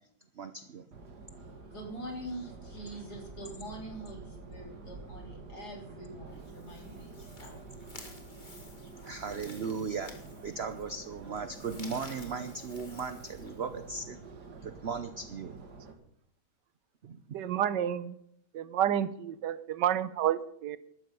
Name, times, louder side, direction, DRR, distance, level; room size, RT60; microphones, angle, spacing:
voice 1, 0.4-0.8 9.0-10.1 10.4-14.2 14.6-15.6 17.0-17.2, right 5 dB, 50° right, 0.8 m, -37 dB
Subway metro underground, 0.9-15.9, right 3 dB, 70° right, 2.5 m, -48 dB
voice 2, 1.7-7.6, right 1 dB, 65° left, 4.0 m, -44 dB
sound 1, 6.3-14.0, left 2 dB, 25° left, 1.9 m, -53 dB
voice 3, 17.3-18.2 18.5-20.8, right 10 dB, 90° right, 1.4 m, -30 dB
14.0 x 12.5 x 5.4 m
omnidirectional pair, 1.8 m